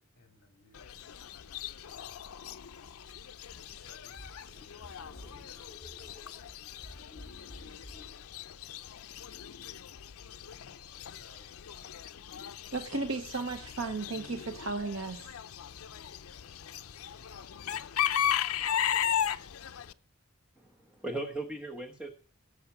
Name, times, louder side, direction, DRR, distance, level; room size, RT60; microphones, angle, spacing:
voice 1, 0.0-2.5 3.6-7.7 8.1-8.9 11.0-12.1 12.8-13.2 14.5-14.7 15.6-18.7 19.1-20.0, left 2 dB, 45° left, 3.9 m, -63 dB
Chicken rooster / Bird, 0.7-19.9, left 10 dB, 80° left, 0.5 m, -37 dB
sound 1, 2.8-8.1, left 1 dB, 20° left, 2.9 m, -52 dB
voice 2, 12.7-15.4, right 3 dB, 65° right, 0.9 m, -35 dB
voice 3, 20.6-22.1, right 2 dB, 5° right, 1.1 m, -38 dB
17.5 x 7.2 x 5.9 m
head